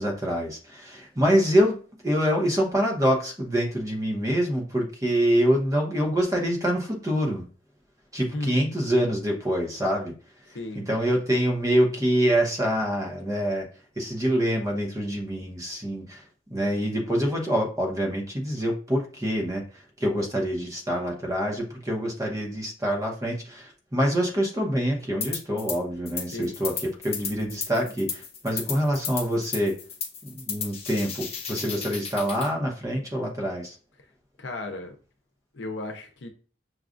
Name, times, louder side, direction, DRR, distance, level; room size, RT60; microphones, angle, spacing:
voice 1, 0.0-7.5 8.1-10.1 10.5-13.7 14.0-16.2 16.5-29.8 30.2-33.8, equal, 20° right, 0.9 m, -26 dB
sound 1, 25.2-25.8 26.1-32.5, left 6 dB, 35° left, 0.7 m, -34 dB
voice 2, 34.4-35.0 35.5-36.3, left 2 dB, 80° left, 0.7 m, -34 dB
6.4 x 2.4 x 2.5 m
head